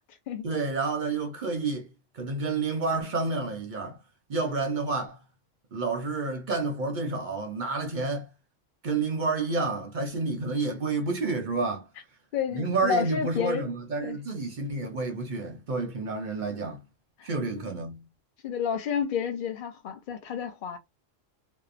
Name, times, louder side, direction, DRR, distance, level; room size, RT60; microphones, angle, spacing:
voice 1, 0.4-1.9 2.1-4.0 4.3-5.2 5.7-8.3 8.8-11.9 12.5-16.8 17.2-18.1, right 3 dB, 55° right, 0.6 m, -29 dB
voice 2, 12.3-13.7 14.0-14.2 17.2-17.3 17.6-17.7 18.4-20.8, left 7 dB, 50° left, 0.7 m, -30 dB
2.7 x 2.0 x 2.4 m
omnidirectional pair, 1.3 m